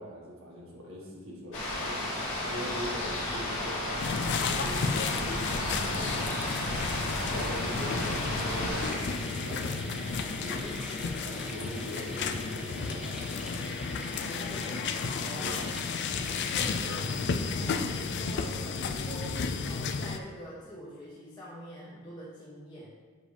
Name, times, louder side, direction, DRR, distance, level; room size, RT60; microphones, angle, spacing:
voice 1, 0.0-2.0 2.4-5.3 5.7-6.5 7.3-10.8 11.2-13.3 15.3-15.7, equal, 80° right, -3 dB, 1.6 m, -42 dB
sound 1, 1.5-8.9, left 1 dB, 75° left, 2.0 m, -33 dB
sound 2, 3.5-20.1, equal, 5° right, 0.6 m, -42 dB
sound 3, 4.0-20.2, left 5 dB, 55° left, 0.4 m, -33 dB
voice 2, 14.1-15.6 16.2-23.0, equal, 20° left, -8 dB, 1.1 m, -45 dB
7.5 x 4.9 x 3.3 m, 1.4 s
head